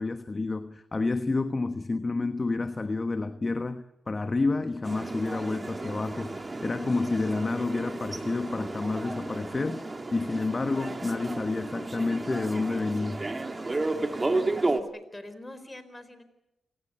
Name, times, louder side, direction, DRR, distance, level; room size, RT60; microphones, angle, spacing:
voice 1, 0.0-13.3, left 3 dB, 35° left, 1.2 m, -29 dB
sound 1, 4.8-14.8, right 2 dB, 30° right, 2.5 m, -33 dB
voice 2, 14.6-16.2, left 1 dB, 20° left, 4.4 m, -45 dB
28.5 x 18.5 x 8.6 m
supercardioid pair, 55°, 0 cm